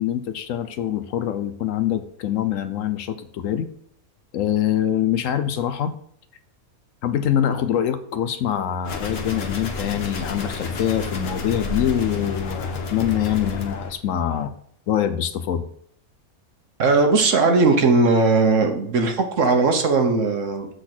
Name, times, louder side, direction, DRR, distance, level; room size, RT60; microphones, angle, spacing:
voice 1, 0.0-3.7 4.3-5.9 7.0-14.5 14.9-15.7, left 10 dB, 70° left, 11 dB, 1.0 m, -24 dB
sound 1, 8.8-13.9, left 3 dB, 50° left, 1.2 m, -30 dB
voice 2, 16.8-20.7, right 3 dB, 60° right, 5 dB, 1.3 m, -18 dB
8.0 x 4.1 x 6.0 m, 0.66 s
omnidirectional pair, 1.5 m